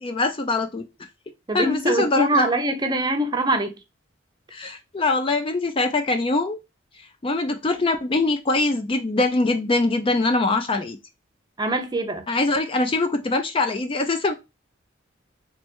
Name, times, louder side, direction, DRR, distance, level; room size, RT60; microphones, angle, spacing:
voice 1, 0.0-0.8 1.5-2.5 4.5-6.6 7.2-11.0 12.3-14.3, left 2 dB, 25° left, 0.4 m, -23 dB
voice 2, 1.5-3.8 11.6-12.3, right 1 dB, 20° right, 0.6 m, -23 dB
3.3 x 3.1 x 2.9 m
head